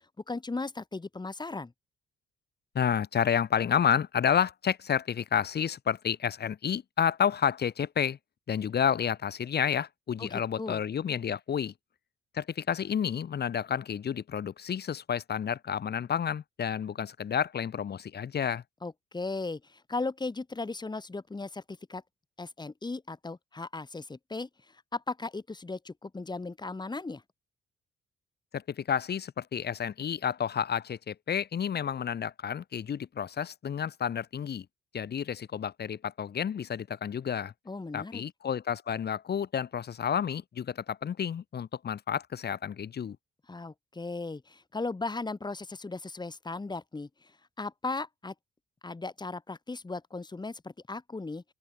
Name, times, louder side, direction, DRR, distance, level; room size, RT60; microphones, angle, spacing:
voice 1, 0.3-1.7 10.2-10.8 18.8-22.0 22.4-27.2 37.7-38.2 43.5-48.3 48.8-51.4, left 3 dB, 20° left, 6.2 m, -37 dB
voice 2, 2.8-8.2 8.5-11.7 12.3-18.6 28.5-34.7 34.9-37.5 37.9-43.2, left 8 dB, 55° left, 7.0 m, -30 dB
open air
cardioid pair, 90°, 20 cm